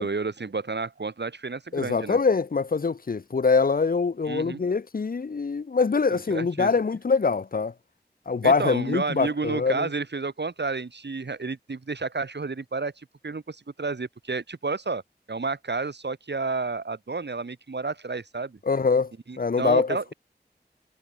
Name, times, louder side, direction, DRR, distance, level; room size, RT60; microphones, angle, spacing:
voice 1, 0.0-2.2 4.3-4.6 6.1-6.7 8.4-15.0 15.3-18.6 19.3-20.1, right 4 dB, 90° right, 2.5 m, -31 dB
voice 2, 1.7-7.7 8.3-9.9 18.7-19.1 19.4-20.1, left 4 dB, 55° left, 0.6 m, -24 dB
wide cardioid pair, 55°, 18 cm